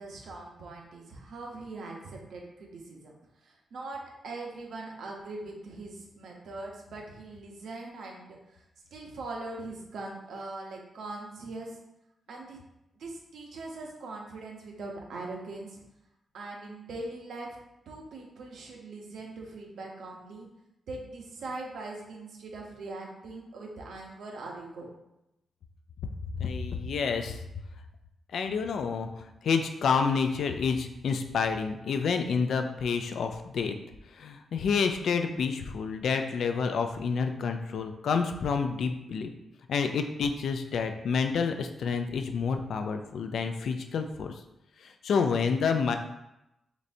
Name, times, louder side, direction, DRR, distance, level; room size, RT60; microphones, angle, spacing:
voice 1, 0.0-3.2 3.4-8.6 8.9-11.8 12.3-12.6 13.0-15.8 16.3-17.6 17.9-20.5 20.9-24.9, right 2 dB, 75° right, 0 dB, 0.8 m, -41 dB
voice 2, 26.4-27.4 28.3-33.8 34.1-39.3 39.7-44.4 44.8-46.0, left 5 dB, 65° left, 6 dB, 0.3 m, -29 dB
4.0 x 3.2 x 2.6 m, 0.90 s
wide cardioid pair, 175°, 0 cm